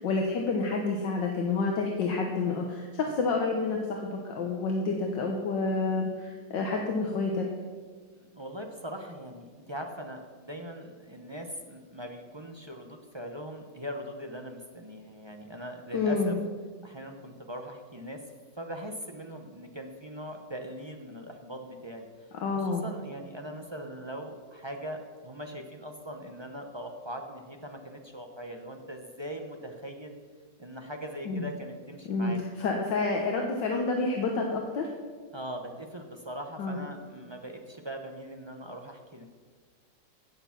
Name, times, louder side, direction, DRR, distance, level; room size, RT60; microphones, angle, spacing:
voice 1, 0.0-7.5 15.9-16.3 22.4-22.8 31.3-31.5 32.1-34.9 36.6-36.8, left 3 dB, 75° left, 1 dB, 1.8 m, -29 dB
voice 2, 8.1-16.4 16.8-18.2 18.6-30.1 30.6-32.4 35.3-39.3, equal, 25° right, 3 dB, 0.6 m, -41 dB
16.5 x 7.0 x 5.9 m, 1.5 s
omnidirectional pair, 2.0 m